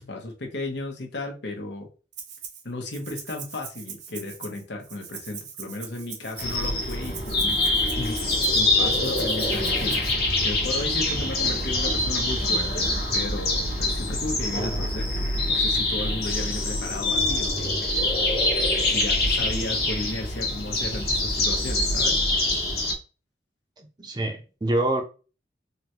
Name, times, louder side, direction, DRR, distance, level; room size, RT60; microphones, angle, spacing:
voice 1, 0.0-1.9 2.6-8.2 8.5-12.9 13.1-18.5 18.9-22.2, left 2 dB, 80° left, 0.8 m, -35 dB
Rattle (instrument), 2.1-2.6 2.9-10.1, right 7 dB, 80° right, 0.8 m, -41 dB
sound 1, 6.4-22.9, left 2 dB, 60° left, 1.1 m, -25 dB
voice 2, 23.8-25.0, right 1 dB, 25° right, 0.6 m, -26 dB
3.8 x 2.2 x 2.8 m
head